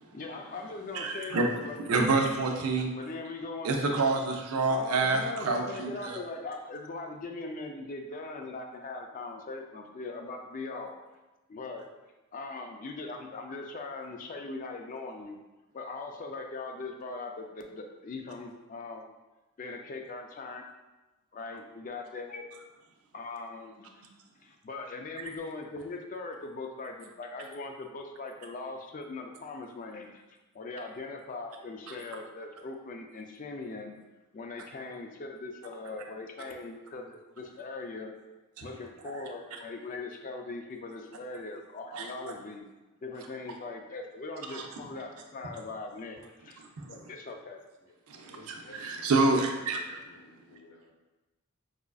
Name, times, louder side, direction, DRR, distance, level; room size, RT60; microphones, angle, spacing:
voice 1, 0.1-2.1 2.9-3.9 4.7-11.0 11.5-11.9 12.3-15.4 15.7-19.1 19.6-20.7 21.3-22.5 23.1-24.0 24.4-30.2 30.5-34.0 34.3-38.1 38.6-42.7 43.0-46.6 46.9-47.6, left 3 dB, 35° left, 4 dB, 0.3 m, -40 dB
voice 2, 0.9-1.5 1.9-2.9 3.6-6.2 31.9-32.0 38.6-38.7 41.9-42.1 44.5-44.6 46.8-46.9 48.1-50.0, right 3 dB, 80° right, 3 dB, 0.5 m, -28 dB
voice 3, 47.8-49.1 49.8-50.9, left 2 dB, 70° left, -3 dB, 0.7 m, -55 dB
4.8 x 2.4 x 2.3 m, 1.1 s
head